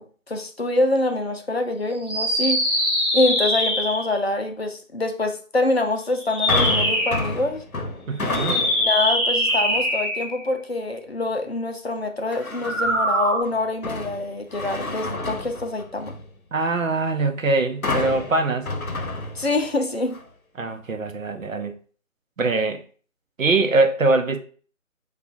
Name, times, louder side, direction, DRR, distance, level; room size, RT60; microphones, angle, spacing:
voice 1, 0.0-2.6 3.1-7.6 8.5-16.1 19.4-20.2, left 2 dB, 50° left, 0.5 m, -25 dB
sound 1, 2.0-4.2 6.2-7.3 8.3-10.4 12.5-13.4, equal, 15° right, 1.1 m, -23 dB
sound 2, 6.5-9.0 9.5-9.9 12.3-13.0 13.5-16.3 17.8-19.8 20.1-20.2, left 2 dB, 90° left, 0.8 m, -29 dB
voice 2, 8.1-8.6 16.5-18.7 20.6-21.7 22.4-22.8 23.4-24.4, right 3 dB, 70° right, 0.7 m, -22 dB
6.5 x 2.4 x 2.3 m
figure-of-eight pair, 155°, 41 cm